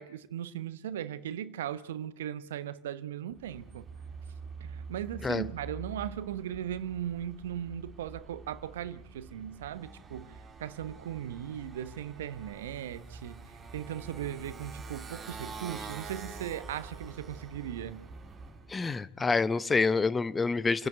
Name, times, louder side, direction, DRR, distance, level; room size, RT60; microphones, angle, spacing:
voice 1, 0.0-3.9 4.6-13.4 13.7-18.0, right 10 dB, 75° right, 1.1 m, -38 dB
Motorcycle, 3.3-18.7, right 4 dB, 30° right, 4.6 m, -46 dB
voice 2, 18.7-20.9, left 4 dB, 20° left, 1.0 m, -27 dB
28.0 x 10.5 x 9.2 m
hypercardioid pair, 85°, 0 cm